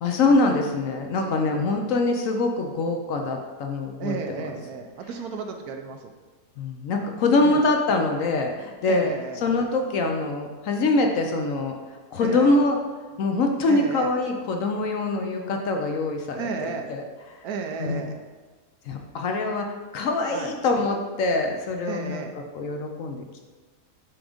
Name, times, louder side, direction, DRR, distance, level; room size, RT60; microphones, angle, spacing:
voice 1, 0.0-4.5 6.6-11.7 12.1-12.8 13.2-17.4 17.8-18.1 18.9-23.2, left 2 dB, 65° left, 3 dB, 0.9 m, -24 dB
voice 2, 1.2-1.6 4.0-6.1 7.4-7.6 8.9-9.4 12.2-12.6 13.7-14.1 16.3-16.9 17.4-18.2 20.3-20.5 21.9-22.3, right 5 dB, 70° right, 5 dB, 1.0 m, -33 dB
6.1 x 3.7 x 5.0 m, 1.3 s
omnidirectional pair, 1.8 m